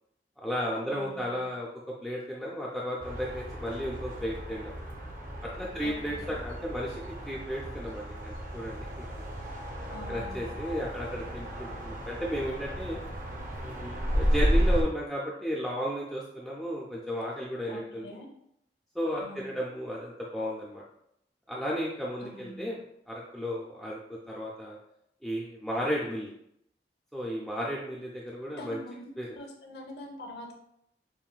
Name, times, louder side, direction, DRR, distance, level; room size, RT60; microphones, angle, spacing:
voice 1, 0.4-1.7 2.0-4.7 5.4-9.1 10.1-13.0 13.6-18.1 19.0-20.8 21.5-22.8 23.1-24.8 25.2-26.3 27.1-28.8 29.2-29.4, equal, ahead, -4 dB, 0.3 m, -34 dB
voice 2, 0.9-1.2 5.8-6.4 9.9-10.5 17.7-18.3 19.2-19.5 22.2-22.7 28.6-30.5, left 1 dB, 75° left, 1 dB, 0.8 m, -44 dB
sound 1, 3.0-14.8, equal, 50° right, 0.7 m, -33 dB
5.5 x 2.5 x 2.3 m, 0.76 s
head